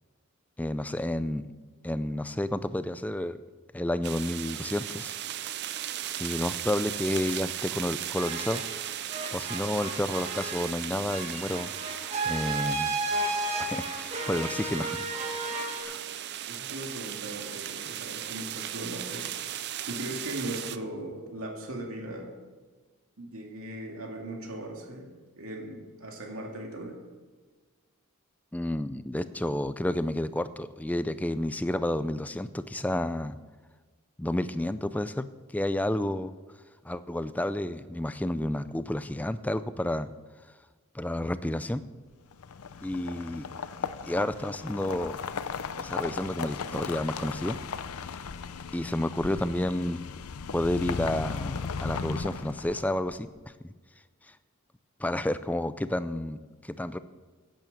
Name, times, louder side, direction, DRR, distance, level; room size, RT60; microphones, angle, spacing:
voice 1, 0.6-1.4 1.8-3.4 3.7-5.1 6.2-8.6 9.3-11.7 12.3-12.9 13.6-15.0 15.8-16.0 28.5-33.4 34.2-35.3 35.5-36.3 36.8-40.1 40.9-41.8 42.8-43.5 43.8-45.2 45.8-47.6 48.7-50.0 50.5-53.3 55.0-57.0, left 1 dB, 5° left, 13 dB, 0.3 m, -30 dB
sound 1, 4.0-20.8, right 11 dB, 50° right, 0.5 m, -37 dB
sound 2, 8.2-8.8 9.1-15.8, right 2 dB, 30° right, 1.6 m, -33 dB
voice 2, 16.5-19.3 19.9-22.3 23.2-27.0, right 1 dB, 75° right, 1 dB, 2.3 m, -38 dB
sound 3, 42.3-53.1, left 5 dB, 80° left, 0.6 m, -36 dB
10.5 x 9.0 x 7.1 m, 1.4 s
head